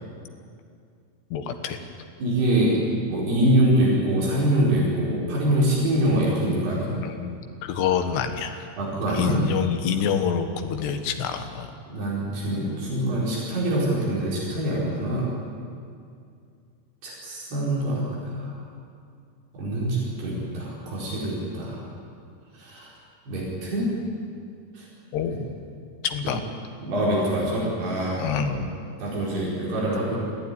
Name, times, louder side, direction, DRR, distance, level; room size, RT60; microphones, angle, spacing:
voice 1, 1.3-1.8 6.9-8.7 9.1-11.7 25.1-25.4 26.0-26.4 28.2-28.7, left 7 dB, 80° left, 6 dB, 3.4 m, -27 dB
voice 2, 2.2-6.9 8.8-9.4 11.9-15.3 17.0-18.5 19.5-21.8 22.5-22.9 23.3-23.9 24.7-24.9 25.3-25.4 26.8-28.7 29.0-30.2, right 1 dB, 75° right, -6 dB, 6.7 m, -24 dB
23.5 x 15.0 x 9.8 m, 2.3 s
omnidirectional pair, 4.8 m